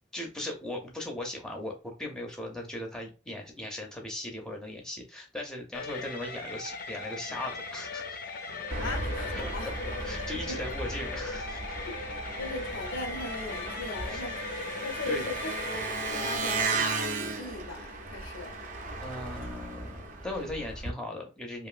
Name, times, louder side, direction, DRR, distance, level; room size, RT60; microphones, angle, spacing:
voice 1, 0.1-8.2 9.2-9.7 10.0-11.6 14.1-14.2 15.1-15.3 19.0-21.7, left 1 dB, 5° left, 0.5 m, -38 dB
sound 1, 5.7-16.6, left 3 dB, 50° left, 0.4 m, -38 dB
Engine, 8.7-20.9, right 3 dB, 40° right, 0.5 m, -35 dB
voice 2, 8.8-9.7 10.5-10.6 12.4-14.4 14.8-15.5 16.1-18.6, left 2 dB, 85° left, 0.7 m, -38 dB
2.9 x 2.5 x 2.4 m
head